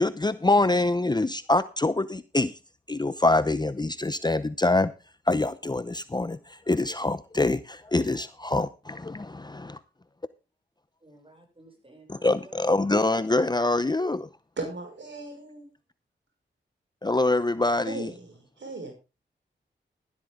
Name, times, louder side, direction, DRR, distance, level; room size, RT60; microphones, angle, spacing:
voice 1, 0.0-2.6 2.9-4.9 5.3-9.8 12.1-14.3 17.0-18.1, left 2 dB, 20° left, 0.8 m, -25 dB
voice 2, 11.0-13.7, right 2 dB, 25° right, 7.0 m, -53 dB
voice 3, 14.6-15.7 17.9-18.9, right 3 dB, 70° right, 5.6 m, -37 dB
13.0 x 12.0 x 3.7 m
cardioid pair, 45°, 20 cm